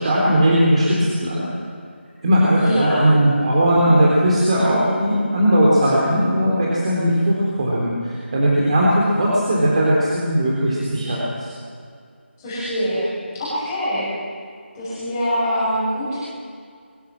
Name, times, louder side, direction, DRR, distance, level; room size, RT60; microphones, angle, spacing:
voice 1, 0.0-1.5 2.2-11.5, equal, 35° right, -5 dB, 3.8 m, -18 dB
voice 2, 2.6-3.1 12.4-13.1 13.3-14.1 14.7-16.2, equal, 15° left, -11 dB, 6.2 m, -23 dB
23.0 x 16.0 x 7.4 m, 2.2 s
figure-of-eight pair, 170°, 6 cm